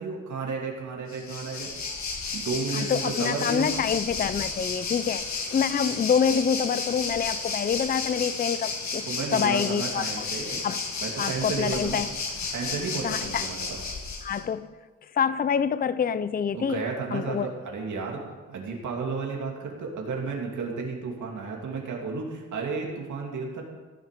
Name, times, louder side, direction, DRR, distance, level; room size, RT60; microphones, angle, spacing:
voice 1, 0.0-1.7 2.3-3.8 9.1-10.6 11.0-12.0 12.5-13.8 16.5-18.2 18.5-23.6, right 4 dB, 80° right, 2.8 m, -32 dB
Waves surf, 1.1-14.4, left 4 dB, 70° left, 2.2 m, -32 dB
voice 2, 2.7-9.1 9.3-10.3 10.6-10.8 11.2-12.1 13.0-13.5 14.2-14.7 15.1-16.8 17.1-17.5, left 7 dB, 30° left, 0.5 m, -26 dB
15.5 x 7.9 x 6.8 m
wide cardioid pair, 120°, 30 cm